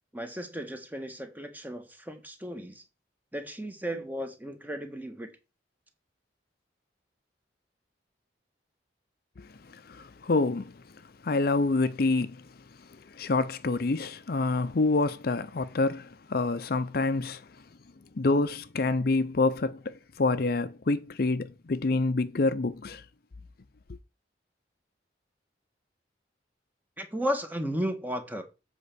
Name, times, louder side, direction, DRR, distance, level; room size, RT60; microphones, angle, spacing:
voice 1, 0.1-2.8 3.3-5.3 27.0-28.4, equal, 10° right, 1.3 m, -34 dB
voice 2, 9.4-10.8 11.2-12.5 12.8-17.5 18.1-23.0 23.9-24.0, left 3 dB, 55° left, 0.6 m, -27 dB
8.3 x 4.5 x 6.8 m
head